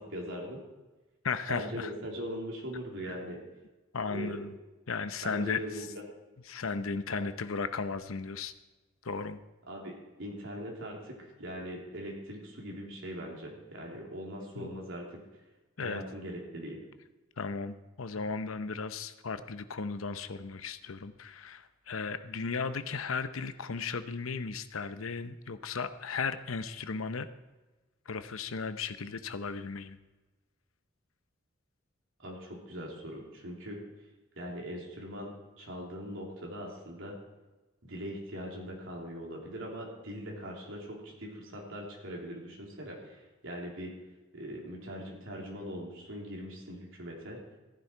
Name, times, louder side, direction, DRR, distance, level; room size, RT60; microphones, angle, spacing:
voice 1, 0.1-0.6 1.5-3.4 4.1-4.4 5.2-6.0 7.1-7.2 9.7-11.1 11.4-15.2 15.8-16.8 32.2-33.8 34.4-37.2 37.8-43.9 44.3-47.4, equal, 70° right, -2 dB, 3.4 m, -41 dB
voice 2, 1.2-1.9 3.9-4.5 4.9-5.9 6.5-8.5 9.0-9.4 14.6-14.7 15.8-16.0 17.4-27.3 28.1-30.0, left 5 dB, 90° left, 11 dB, 0.8 m, -35 dB
14.5 x 10.5 x 4.6 m, 1.2 s
head